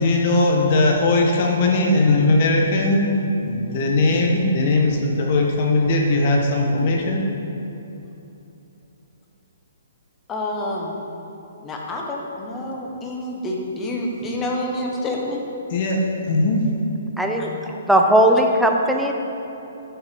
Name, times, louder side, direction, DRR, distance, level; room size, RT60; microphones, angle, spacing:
voice 1, 0.0-7.2 15.7-16.7, left 2 dB, 45° left, 0 dB, 1.6 m, -19 dB
voice 2, 10.3-11.0 11.6-15.4 17.4-17.5, left 1 dB, 15° left, -1 dB, 1.4 m, -28 dB
voice 3, 17.2-19.1, right 1 dB, ahead, 1 dB, 0.7 m, -18 dB
11.5 x 7.1 x 5.4 m, 3.0 s
hypercardioid pair, 155°, 0 cm